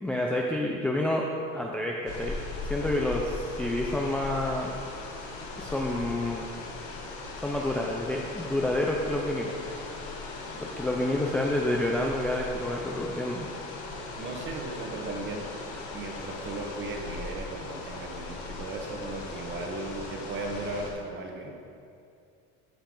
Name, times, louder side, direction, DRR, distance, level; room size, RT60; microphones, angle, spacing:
voice 1, 0.0-1.3 1.5-2.4 2.6-4.7 5.6-6.4 7.4-9.8 10.6-13.5, left 1 dB, 5° left, -1 dB, 0.4 m, -29 dB
sound 1, 2.1-20.9, left 3 dB, 65° left, 2.0 m, -39 dB
voice 2, 14.2-15.5 15.9-21.5, right 3 dB, 35° right, 1 dB, 1.4 m, -36 dB
14.0 x 6.9 x 3.8 m, 2.5 s
cardioid pair, 160°, 33 cm